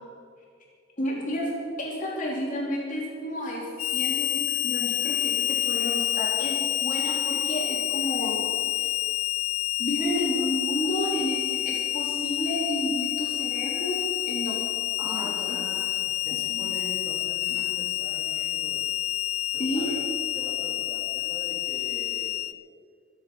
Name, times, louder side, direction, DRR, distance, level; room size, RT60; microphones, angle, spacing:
voice 1, 1.0-1.5 1.8-3.7 3.9-8.4 8.7-8.9 9.8-14.0 14.2-14.6 15.0-15.6 16.5-16.6 17.5-17.6 19.6-19.9, equal, 35° left, -4 dB, 3.0 m, -31 dB
Harmonica, 3.8-22.5, left 16 dB, 90° left, 0.4 m, -28 dB
voice 2, 15.0-15.9 16.2-18.9 19.5-20.0 20.3-22.4, equal, 15° right, -5 dB, 3.8 m, -41 dB
24.5 x 8.4 x 5.4 m, 2.2 s
head